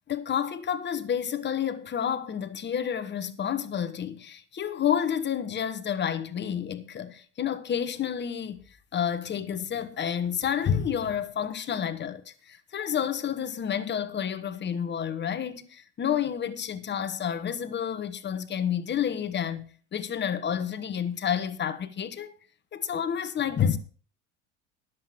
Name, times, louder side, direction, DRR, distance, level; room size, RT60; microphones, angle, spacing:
voice 1, 0.1-8.6 8.9-22.3 22.7-23.8, left 8 dB, 30° left, 1.2 m, -30 dB
10.5 x 7.8 x 5.8 m
hypercardioid pair, 75°, 35 cm